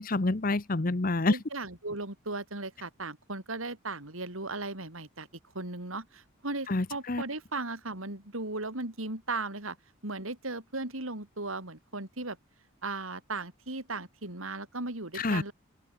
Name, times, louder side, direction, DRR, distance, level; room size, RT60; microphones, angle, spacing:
voice 1, 0.0-1.4 6.7-7.2 15.1-15.4, left 2 dB, 45° left, 0.9 m, -27 dB
voice 2, 1.3-5.3 5.5-9.8 10.0-12.4 12.8-15.5, right 2 dB, 80° right, 5.0 m, -37 dB
open air
head